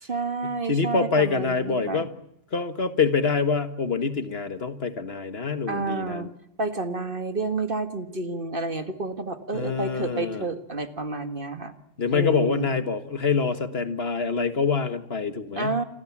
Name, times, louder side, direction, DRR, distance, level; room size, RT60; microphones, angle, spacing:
voice 1, 0.0-2.1 5.7-6.3 6.6-11.7 12.1-12.7 15.6-15.8, right 3 dB, 50° right, 9 dB, 2.0 m, -30 dB
voice 2, 0.7-2.1 2.5-6.3 9.5-10.5 12.0-15.8, left 5 dB, 60° left, 10 dB, 1.8 m, -25 dB
28.5 x 23.0 x 7.4 m, 0.78 s
omnidirectional pair, 1.2 m